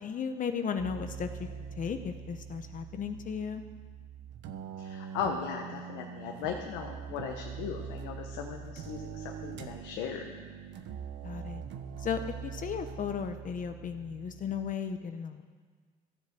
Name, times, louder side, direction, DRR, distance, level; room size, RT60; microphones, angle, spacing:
voice 1, 0.0-1.3 1.8-3.6 11.2-11.6 12.0-15.4, left 7 dB, 45° left, 8 dB, 0.9 m, -35 dB
sound 1, 0.8-14.7, right 7 dB, 65° right, 1.1 m, -43 dB
voice 2, 4.8-10.4, left 7 dB, 85° left, 2 dB, 1.2 m, -37 dB
14.5 x 7.4 x 7.6 m, 1.5 s
supercardioid pair, 90°, 19 cm